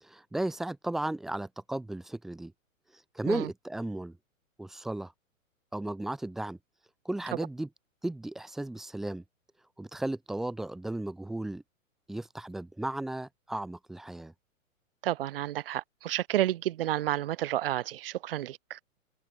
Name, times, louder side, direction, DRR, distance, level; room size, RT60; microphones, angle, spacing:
voice 1, 0.0-2.5 3.1-4.2 4.6-5.1 5.7-6.6 7.1-7.7 8.0-9.2 9.8-11.6 12.1-14.3, right 1 dB, ahead, 0.4 m, -35 dB
voice 2, 15.0-18.8, right 13 dB, 45° right, 0.6 m, -31 dB
figure-of-eight pair, 110°, 41 cm